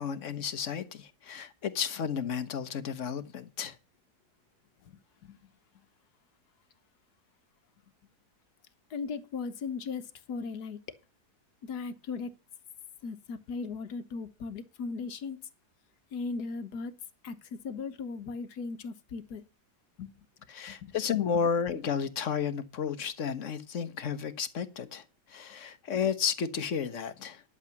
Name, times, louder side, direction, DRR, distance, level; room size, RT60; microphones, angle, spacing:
voice 1, 0.0-3.7 20.5-27.4, left 7 dB, 50° left, 1.3 m, -32 dB
voice 2, 4.8-5.4 8.9-10.8 11.6-12.3 13.0-15.4 16.1-16.9 17.2-19.4 20.0-20.1 20.7-21.4, left 4 dB, 70° left, 1.6 m, -38 dB
11.5 x 7.2 x 5.8 m
omnidirectional pair, 1.8 m